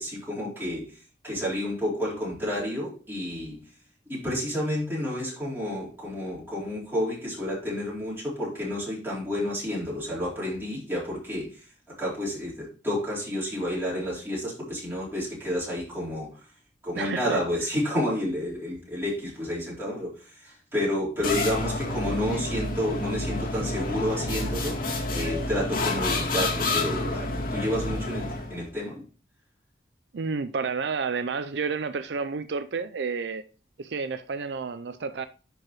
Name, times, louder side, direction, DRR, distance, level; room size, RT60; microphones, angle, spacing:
voice 1, 0.0-3.7 4.1-11.7 12.0-16.5 16.8-29.0, left 1 dB, 15° right, 4.3 m, -30 dB
voice 2, 17.0-17.4 30.1-33.4 33.8-35.3, right 5 dB, 75° right, 0.5 m, -30 dB
sound 1, 21.2-28.6, left 2 dB, 50° left, 1.9 m, -29 dB
11.0 x 4.7 x 3.0 m
head